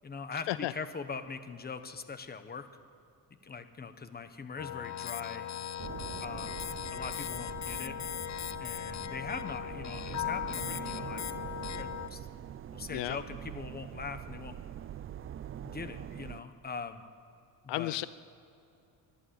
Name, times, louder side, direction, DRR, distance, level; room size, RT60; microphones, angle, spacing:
voice 1, 0.0-2.7 3.4-5.5 6.2-6.6 6.9-8.0 8.6-11.3 11.7-12.3 12.7-14.6 15.6-17.0 17.6-18.0, left 5 dB, 20° left, 10 dB, 1.3 m, -41 dB
sound 1, 4.6-12.1, left 10 dB, 40° left, 0.8 m, -38 dB
sound 2, 5.8-16.4, right 10 dB, 30° right, 0.4 m, -44 dB
voice 2, 17.7-18.1, left 16 dB, 75° left, 16 dB, 0.7 m, -32 dB
24.5 x 12.0 x 8.9 m, 2.7 s
cardioid pair, 130°, 43 cm